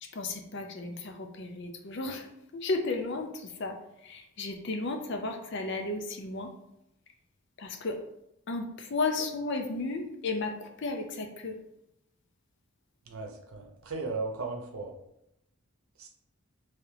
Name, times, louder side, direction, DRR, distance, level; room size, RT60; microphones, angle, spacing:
voice 1, 0.0-2.3 2.5-6.5 7.6-8.0 8.5-11.6, left 3 dB, 55° left, 4 dB, 0.5 m, -34 dB
voice 2, 13.1-14.9 16.0-16.1, right 3 dB, 80° right, 2 dB, 0.8 m, -36 dB
3.5 x 3.1 x 3.3 m, 0.83 s
head